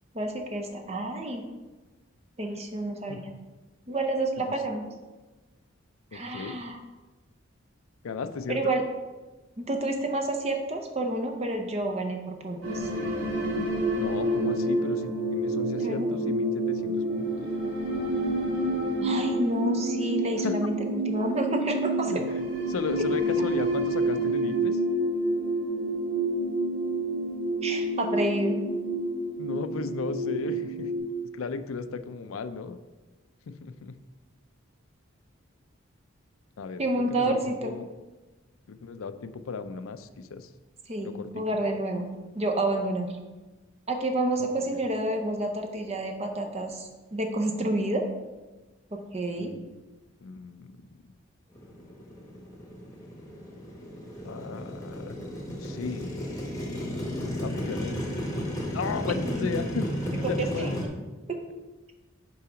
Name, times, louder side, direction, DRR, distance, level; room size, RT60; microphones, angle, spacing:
voice 1, 0.1-1.5 2.4-3.3 3.9-4.8 6.1-6.8 8.5-8.8 9.6-12.9 15.8-16.1 19.0-22.1 27.6-28.6 36.8-37.7 40.9-43.2 43.9-48.0 48.9-49.5 59.1-59.5 60.4-60.7 61.3-61.4, right 1 dB, 30° right, 4 dB, 0.6 m, -29 dB
voice 2, 6.1-6.6 8.0-8.7 14.0-17.5 20.4-20.5 22.1-22.2 22.7-24.8 29.4-30.9 31.3-32.8 33.5-34.0 36.6-36.8 37.1-37.9 38.7-40.5 41.0-41.4 44.4-44.8 49.4-49.6 50.2-50.7 54.2-55.2 55.5-56.2 57.4-58.1 58.7-60.8, left 5 dB, 85° left, 11 dB, 0.4 m, -35 dB
sound 1, 12.6-31.0, right 1 dB, 80° right, 2.2 m, -28 dB
Motorcycle, 51.5-60.9, equal, 15° left, 1.0 m, -33 dB
5.6 x 4.7 x 5.0 m, 1.2 s
head